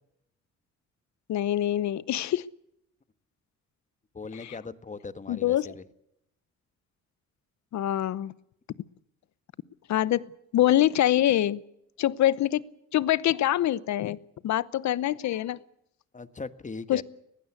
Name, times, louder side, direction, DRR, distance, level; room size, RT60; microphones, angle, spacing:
voice 1, 1.3-2.5 4.4-4.5 5.3-5.7 7.7-8.3 9.9-11.6 12.0-12.6 12.9-14.2 14.4-15.6 16.9-17.0, left 13 dB, 70° left, 19 dB, 0.9 m, -25 dB
voice 2, 4.1-5.8 16.1-17.0, left 4 dB, 25° left, 12 dB, 1.4 m, -39 dB
20.5 x 16.0 x 8.3 m, 0.80 s
cardioid pair, 90°, 30 cm